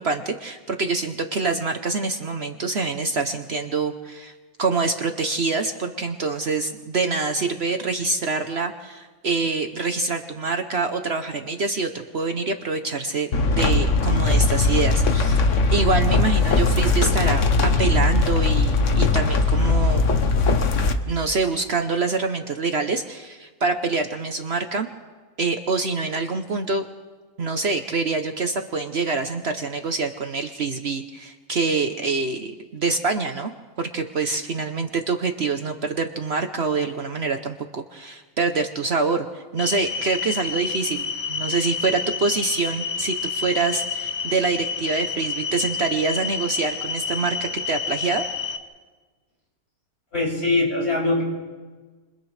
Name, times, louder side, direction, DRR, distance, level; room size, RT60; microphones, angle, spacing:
voice 1, 0.0-4.3 4.6-20.3 21.1-24.9 25.4-26.8 27.4-48.3, right 4 dB, 50° right, 6 dB, 1.1 m, -25 dB
sound 1, 13.3-20.9, left 3 dB, 60° left, 1.4 m, -19 dB
sound 2, 39.6-48.6, left 5 dB, 85° left, 1.5 m, -29 dB
voice 2, 50.1-51.2, left 2 dB, 45° left, -4 dB, 7.3 m, -22 dB
30.0 x 27.5 x 3.3 m, 1.4 s
omnidirectional pair, 1.5 m